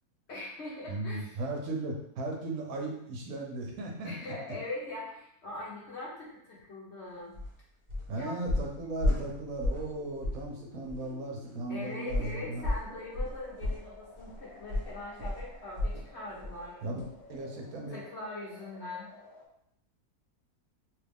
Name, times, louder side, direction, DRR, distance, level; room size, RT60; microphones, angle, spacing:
voice 1, 0.3-1.4 4.0-7.4 8.1-8.4 11.7-16.8 17.9-19.1, left 2 dB, 50° left, -6 dB, 1.0 m, -41 dB
voice 2, 0.9-4.1 8.1-12.6 16.8-17.0 17.3-18.0, right 2 dB, 70° right, 0 dB, 1.0 m, -36 dB
sound 1, 7.3-7.5 7.9-8.1 8.5-9.9 10.2-10.5 10.9-11.0 12.1-16.1 16.4-16.6 17.0-17.1, left 1 dB, 30° right, 0.6 m, -32 dB
sound 2, 9.9-19.5, left 3 dB, 75° left, 0.5 m, -54 dB
3.1 x 2.3 x 3.4 m, 0.74 s
omnidirectional pair, 1.6 m